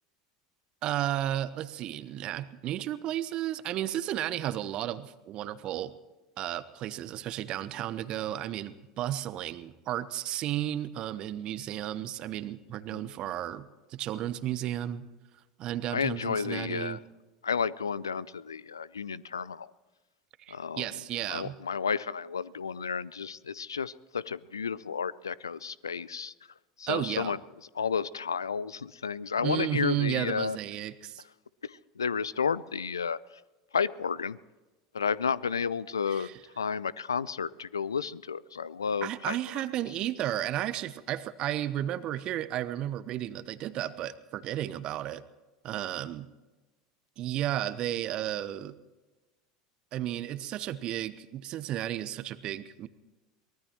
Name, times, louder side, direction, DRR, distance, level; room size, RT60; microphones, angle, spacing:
voice 1, 0.8-5.9 6.4-15.0 15.6-17.0 20.4-21.5 26.9-27.4 29.4-31.2 36.1-36.4 39.0-45.2 45.6-46.3 47.2-48.7 49.9-52.9, right 12 dB, 45° right, 14 dB, 1.0 m, -33 dB
voice 2, 15.9-17.0 17.4-19.7 20.5-20.9 21.3-26.3 26.8-27.4 27.7-30.6 31.6-33.2 33.7-34.4 34.9-36.3 36.6-39.4, left 6 dB, 85° left, 21 dB, 0.4 m, -32 dB
23.5 x 19.0 x 3.1 m, 1.2 s
figure-of-eight pair, 75°, 2 cm